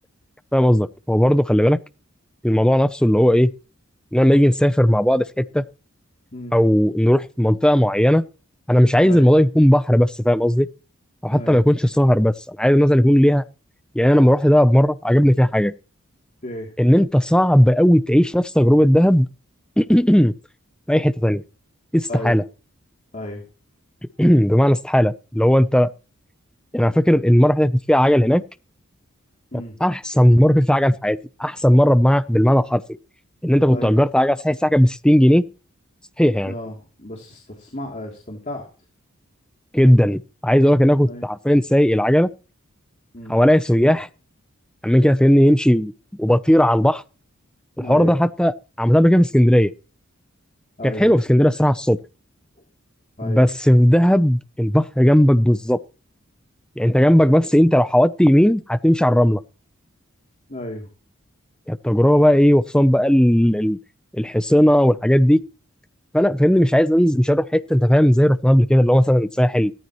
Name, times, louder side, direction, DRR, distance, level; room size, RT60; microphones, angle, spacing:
voice 1, 0.5-1.8 2.4-3.5 4.1-5.6 6.5-8.2 8.7-10.7 11.2-13.4 13.9-15.7 16.8-19.3 19.8-20.3 20.9-21.4 21.9-22.4 24.2-25.9 26.7-28.4 29.8-32.8 33.4-35.4 36.2-36.6 39.7-42.3 43.3-44.1 44.8-45.9 46.2-47.0 47.8-49.7 50.8-52.0 53.2-55.8 56.8-59.4 61.7-63.8 64.1-65.4 66.1-69.7, equal, 5° left, 0.7 m, -16 dB
voice 2, 11.3-11.6 16.4-16.7 22.1-22.4 23.1-23.4 29.5-29.7 33.7-34.0 36.5-38.7 41.1-41.2 43.1-43.4 47.8-48.2 50.8-51.1 53.2-53.5 60.5-60.9, left 1 dB, 35° left, 3.1 m, -33 dB
17.5 x 13.5 x 3.1 m
head